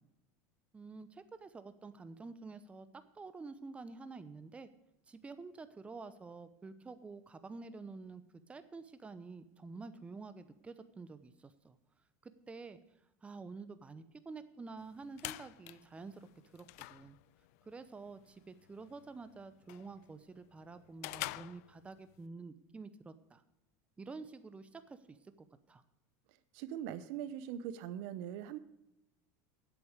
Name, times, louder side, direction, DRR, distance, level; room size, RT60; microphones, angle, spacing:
voice 1, 0.7-2.9 3.1-4.7 5.1-8.2 8.5-11.8 12.2-12.8 13.2-16.3 16.5-17.2 17.6-23.4 24.0-25.8, right 4 dB, 15° right, 12 dB, 0.7 m, -49 dB
sound 1, 14.8-22.3, left 19 dB, 75° left, 0.4 m, -48 dB
voice 2, 26.3-28.6, right 10 dB, 65° right, 14 dB, 0.9 m, -42 dB
10.5 x 8.4 x 6.5 m, 0.88 s
supercardioid pair, 125°, 8 cm